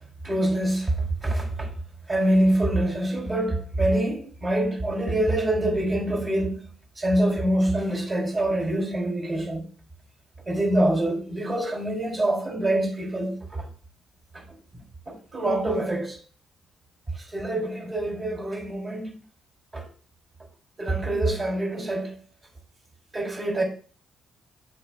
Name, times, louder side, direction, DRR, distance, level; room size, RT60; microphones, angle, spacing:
voice 1, 0.2-0.9 1.2-1.7 2.1-6.6 7.0-9.6 10.5-13.7 15.1-16.2 17.3-19.1 19.7-19.8 20.8-22.1 23.1-23.6, right 1 dB, 35° right, 3.1 m, -25 dB
8.4 x 7.5 x 2.3 m
cardioid pair, 90°, 0 cm